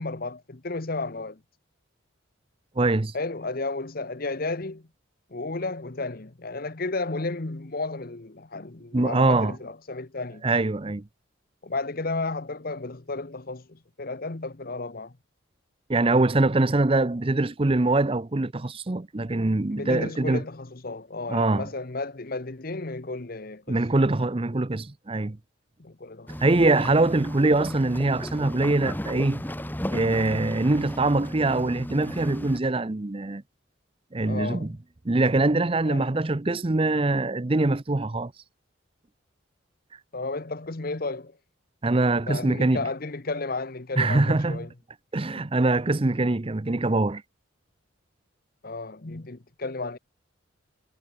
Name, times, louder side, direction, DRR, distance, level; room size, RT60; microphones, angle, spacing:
voice 1, 0.0-1.4 3.1-4.9 5.3-10.4 11.6-15.2 19.7-23.8 25.8-26.4 26.7-26.9 34.2-34.7 35.8-36.2 40.1-41.4 42.3-44.7 45.3-45.5 48.6-50.0, left 3 dB, 45° left, 1.0 m, -33 dB
voice 2, 2.8-3.1 8.9-9.5 10.4-11.0 15.9-20.4 21.3-21.7 23.7-25.4 26.4-29.4 29.9-33.4 34.1-34.7 35.0-38.3 41.8-42.8 44.0-44.7 45.1-47.2, right 2 dB, 25° right, 0.6 m, -23 dB
sound 1, 26.3-32.6, equal, 10° left, 2.0 m, -35 dB
head